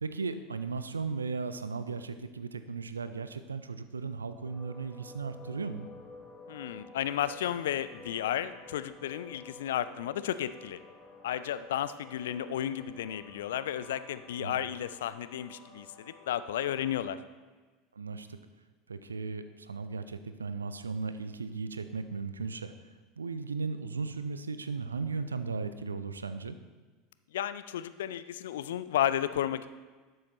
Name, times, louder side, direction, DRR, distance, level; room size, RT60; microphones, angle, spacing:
voice 1, 0.0-5.9 14.4-14.5 18.0-18.3 18.9-22.7 23.2-26.6, right 4 dB, 80° right, 11 dB, 0.4 m, -36 dB
sound 1, 4.4-17.1, left 3 dB, 5° left, 2.4 m, -52 dB
voice 2, 6.5-10.8 11.2-17.2 27.3-29.7, left 11 dB, 65° left, 13 dB, 0.3 m, -33 dB
11.5 x 6.4 x 3.0 m, 1.3 s
figure-of-eight pair, 75°, 0 cm